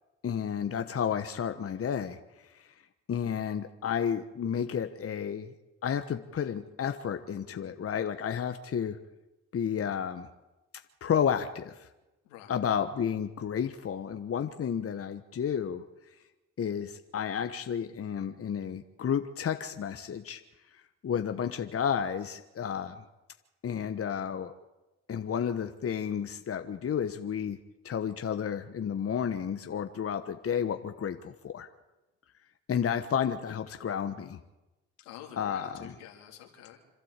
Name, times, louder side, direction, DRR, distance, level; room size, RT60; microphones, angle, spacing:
voice 1, 0.2-2.2 2.5-2.7 3.1-5.5 5.8-9.0 9.5-10.3 11.0-11.9 12.5-15.8 16.6-20.4 20.7-23.0 23.6-24.5 25.1-27.6 27.8-31.7 32.7-34.4 35.4-35.9, left 8 dB, 45° left, 8 dB, 1.2 m, -31 dB
voice 2, 35.0-36.8, left 10 dB, 90° left, 1 dB, 3.3 m, -48 dB
26.5 x 12.5 x 8.2 m, 1.0 s
supercardioid pair, 60°, 31 cm